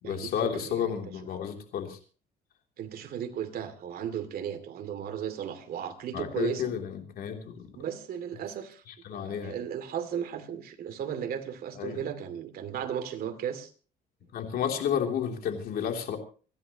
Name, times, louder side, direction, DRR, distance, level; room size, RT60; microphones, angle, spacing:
voice 1, 0.0-2.0 6.1-7.7 8.9-9.6 11.8-12.0 14.3-16.2, left 8 dB, 65° left, 3 dB, 3.1 m, -32 dB
voice 2, 0.6-1.0 2.8-6.6 7.7-8.8 9.1-13.7, right 9 dB, 60° right, 8 dB, 2.6 m, -35 dB
27.5 x 11.0 x 3.0 m, 0.37 s
cardioid pair, 110°, 17 cm